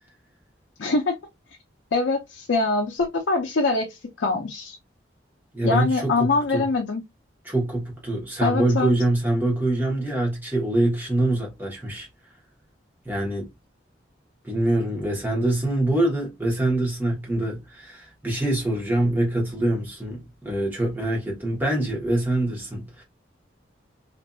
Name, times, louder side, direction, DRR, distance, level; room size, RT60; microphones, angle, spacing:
voice 1, 0.8-1.1 1.9-4.8 5.6-7.0 8.4-8.9, left 3 dB, 70° left, 0.5 m, -23 dB
voice 2, 5.5-6.7 7.4-12.1 13.0-13.5 14.4-23.0, right 1 dB, 10° right, 1.0 m, -24 dB
2.7 x 2.5 x 2.2 m
head